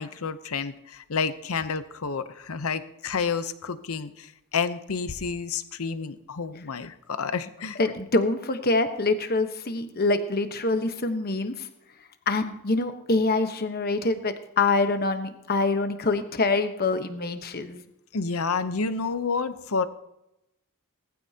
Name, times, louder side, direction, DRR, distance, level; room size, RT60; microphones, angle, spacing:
voice 1, 0.0-7.8 18.1-19.9, left 5 dB, 75° left, 12 dB, 0.8 m, -30 dB
voice 2, 7.8-11.7 12.3-17.8, left 3 dB, 45° left, 8 dB, 1.1 m, -25 dB
19.0 x 14.5 x 2.9 m, 0.86 s
head